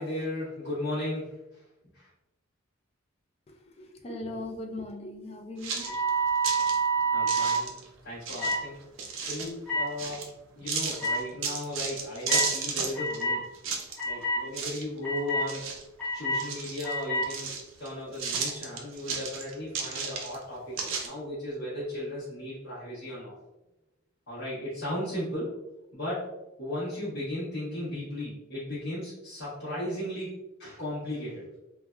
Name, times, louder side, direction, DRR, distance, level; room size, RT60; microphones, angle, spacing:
voice 1, 0.0-1.6 1.9-2.1 7.1-7.8 8.0-8.9 9.3-13.5 14.0-15.6 16.1-17.5 17.8-23.3 24.3-25.5 25.9-26.3 26.6-31.5, left 1 dB, 55° left, -11 dB, 0.9 m, -36 dB
voice 2, 3.8-5.9, left 2 dB, 30° left, 1 dB, 0.3 m, -38 dB
sound 1, 5.6-6.8 7.3-7.9 8.2-9.5 10.0-10.3 10.7-13.2 13.5-14.2 14.5-15.0 15.3-16.1 16.4-17.9 18.1-20.4 20.8-21.1, right 5 dB, 65° right, 0.4 m, -33 dB
sound 2, 5.8-7.6 8.4-8.6 9.7-9.9 11.0-11.2 12.3-12.5 12.9-13.4 14.0-14.4 15.0-15.5 16.0-16.4 16.8-17.3, right 2 dB, 5° left, 0.9 m, -27 dB
3.3 x 2.1 x 2.3 m, 0.97 s
head